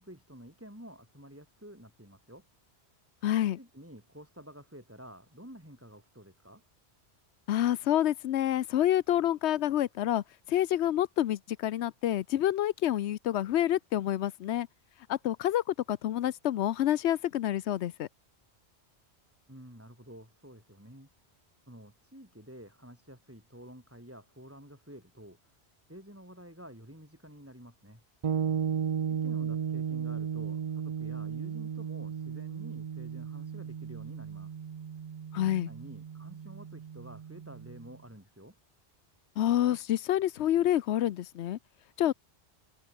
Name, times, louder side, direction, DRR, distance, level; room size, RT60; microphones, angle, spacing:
voice 1, 0.0-2.5 3.6-6.6 19.5-21.1 21.7-25.5 25.9-28.0 29.1-34.5 35.4-38.6, equal, 10° right, 5.4 m, -50 dB
voice 2, 3.2-3.6 7.5-14.7 15.1-18.1 35.3-35.7 39.4-41.6 42.0-42.1, left 12 dB, 85° left, 0.9 m, -28 dB
sound 1, 28.2-37.9, right 7 dB, 45° right, 0.5 m, -35 dB
omnidirectional pair, 1.1 m